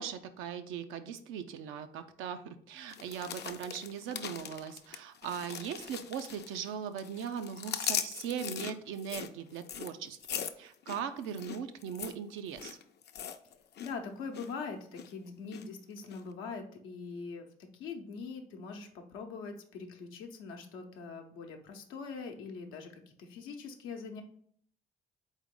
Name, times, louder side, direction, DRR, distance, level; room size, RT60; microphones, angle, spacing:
voice 1, 0.0-12.8, right 7 dB, 85° right, 9 dB, 0.5 m, -39 dB
sound 1, 2.9-6.7 7.0-13.9 14.2-14.5 14.9-15.6 16.1-16.2, left 8 dB, 55° left, 0.5 m, -40 dB
voice 2, 13.8-24.2, left 5 dB, 90° left, 4 dB, 0.7 m, -43 dB
4.0 x 3.6 x 3.6 m, 0.62 s
supercardioid pair, 60°, 20 cm